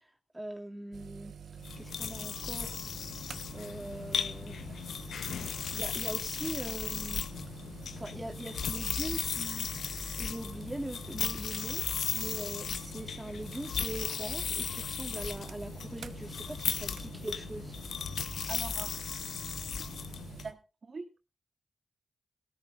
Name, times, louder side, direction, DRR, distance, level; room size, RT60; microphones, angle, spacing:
voice 1, 0.3-1.3 1.8-2.8 3.5-4.6 5.7-7.2 8.0-9.9 10.2-11.9 12.1-17.7, right 1 dB, 15° right, 4 dB, 2.5 m, -41 dB
sound 1, 0.9-20.5, right 7 dB, 75° right, 1.1 m, -47 dB
sound 2, 1.6-20.5, left 7 dB, 80° left, 0.9 m, -36 dB
voice 2, 18.5-19.0 19.8-19.9 20.3-21.3, right 4 dB, 55° right, 7 dB, 2.3 m, -44 dB
18.0 x 14.0 x 2.5 m, 0.30 s
cardioid pair, 50°, 0 cm